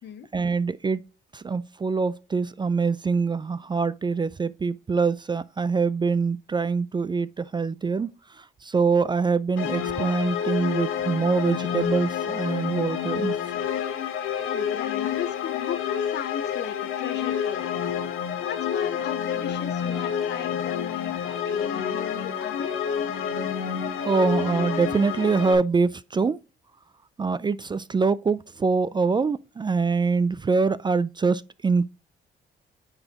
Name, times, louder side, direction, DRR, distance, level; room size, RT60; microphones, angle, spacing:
voice 1, 0.3-1.0 1.3-8.1 8.6-13.4 24.0-26.4 27.2-31.8, right 4 dB, 25° right, 0.3 m, -24 dB
sound 1, 9.6-25.5, left 8 dB, 85° left, 1.1 m, -28 dB
voice 2, 14.4-17.7 18.4-22.8, left 9 dB, 60° left, 0.8 m, -37 dB
8.8 x 4.0 x 2.9 m
cardioid pair, 90°, 20 cm